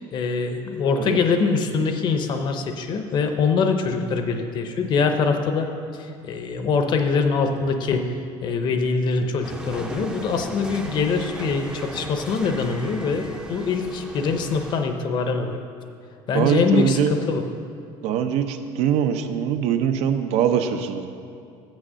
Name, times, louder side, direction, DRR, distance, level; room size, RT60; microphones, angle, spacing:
voice 1, 0.1-5.7 6.0-8.1 8.4-15.6 16.3-17.0 17.3-17.4, left 5 dB, 40° left, 6 dB, 0.7 m, -23 dB
sound 1, 9.4-14.8, right 1 dB, 10° right, 0.5 m, -36 dB
voice 2, 16.3-17.1 18.0-21.1, right 8 dB, 70° right, 8 dB, 0.6 m, -22 dB
7.3 x 6.4 x 6.3 m, 2.5 s
cardioid pair, 150°, 11 cm